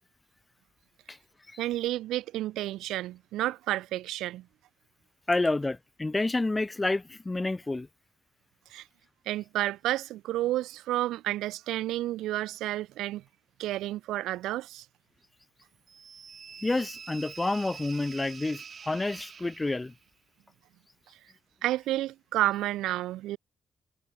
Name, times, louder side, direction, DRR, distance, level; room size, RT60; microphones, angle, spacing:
voice 1, 1.6-4.4 8.7-8.8 9.3-13.2 13.6-14.8 21.6-23.4, right 15 dB, 85° right, 0.4 m, -30 dB
voice 2, 5.3-7.9 16.6-19.9, left 2 dB, 25° left, 0.7 m, -29 dB
sound 1, 15.9-20.0, right 6 dB, 55° right, 1.4 m, -46 dB
supercardioid pair, 55°, 0 cm